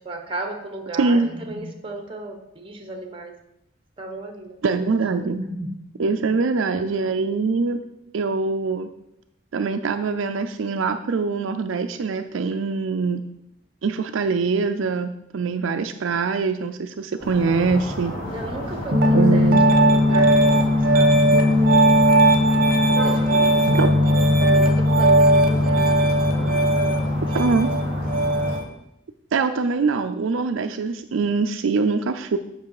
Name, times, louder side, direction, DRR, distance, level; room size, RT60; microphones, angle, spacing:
voice 1, 0.0-3.3 4.0-4.6 5.0-5.7 6.6-7.1 18.3-21.9 22.9-27.6 27.9-28.1, right 2 dB, 25° right, 4 dB, 1.1 m, -35 dB
voice 2, 1.0-1.3 4.6-5.4 6.0-7.8 8.1-8.9 9.5-13.2 13.8-18.2 19.1-19.6 23.7-23.9 27.3-27.7 29.3-32.4, right 4 dB, 70° right, 7 dB, 0.4 m, -23 dB
sound 1, 17.2-28.6, equal, 30° left, 2.6 m, -32 dB
Piano, 18.9-28.6, equal, 45° right, 1.0 m, -17 dB
8.2 x 6.0 x 4.8 m, 0.84 s
head